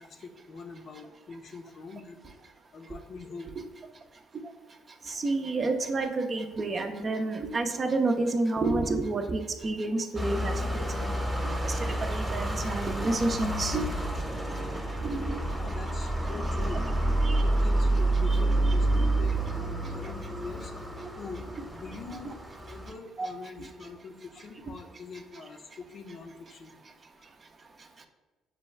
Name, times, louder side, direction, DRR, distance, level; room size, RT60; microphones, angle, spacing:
voice 1, 0.0-2.2 2.7-3.5 5.1-5.2 15.4-16.8 17.4-22.4 22.7-26.7 27.2-27.3, left 4 dB, 55° left, 4 dB, 0.6 m, -44 dB
voice 2, 5.1-11.2 11.6-13.9 15.0-15.4 17.2-17.4 20.0-20.1 23.2-23.3 23.6-23.7, right 3 dB, 40° right, 6 dB, 0.5 m, -29 dB
sound 1, 10.2-22.9, right 1 dB, 5° right, 0.9 m, -29 dB
6.7 x 2.3 x 3.2 m, 1.2 s
hypercardioid pair, 60°, 0 cm